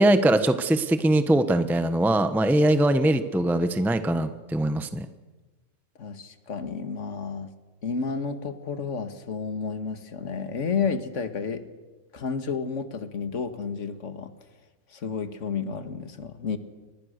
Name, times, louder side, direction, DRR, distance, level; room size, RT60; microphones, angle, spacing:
voice 1, 0.0-5.1, right 1 dB, ahead, 10 dB, 1.0 m, -22 dB
voice 2, 6.0-7.5 7.8-11.6 12.1-14.3 14.9-16.6, left 5 dB, 55° left, 9 dB, 2.0 m, -31 dB
30.0 x 25.0 x 6.7 m, 1.2 s
omnidirectional pair, 1.5 m